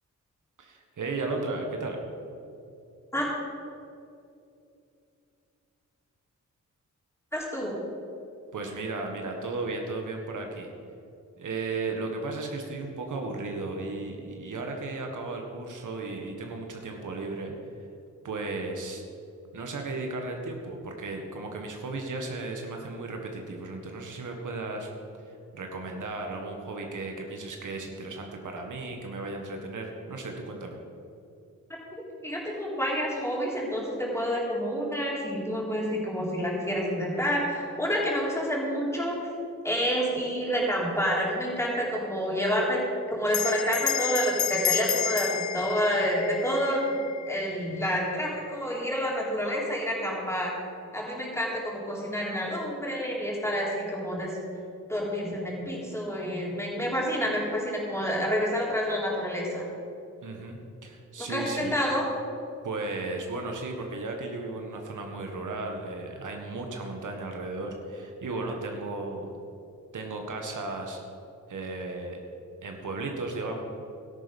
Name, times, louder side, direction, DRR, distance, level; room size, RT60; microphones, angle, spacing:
voice 1, 0.6-2.0 8.5-10.7 11.4-17.5 18.2-19.0 19.5-24.9 25.5-30.8 60.2-61.8 62.6-69.3 69.9-71.0 71.5-72.2 72.6-73.6, right 3 dB, 75° right, 2 dB, 1.7 m, -35 dB
voice 2, 7.3-7.7 32.2-39.2 39.6-42.8 43.1-47.0 47.3-50.5 50.9-54.3 54.9-59.6 61.2-62.1, equal, 10° left, -4 dB, 3.8 m, -28 dB
Bell, 43.3-48.2, left 10 dB, 65° left, 0.6 m, -31 dB
13.5 x 11.0 x 5.4 m, 2.6 s
wide cardioid pair, 95°, 31 cm